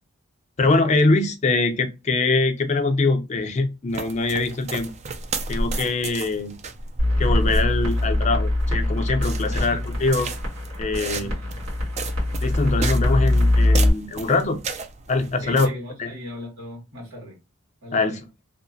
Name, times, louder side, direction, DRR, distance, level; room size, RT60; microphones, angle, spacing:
voice 1, 0.6-4.9 5.5-6.5 7.2-10.3 10.8-11.4 12.4-14.6 15.1-15.7 16.0-16.1 17.9-18.2, left 3 dB, 30° left, 0.4 m, -23 dB
sound 1, 3.9-15.7, right 2 dB, 30° right, 0.3 m, -32 dB
sound 2, 7.0-13.9, left 1 dB, 85° right, 1.3 m, -23 dB
voice 2, 9.4-9.9 11.2-11.6 15.1-17.4 17.8-18.2, left 1 dB, 70° right, 1.6 m, -39 dB
2.8 x 2.0 x 2.5 m
head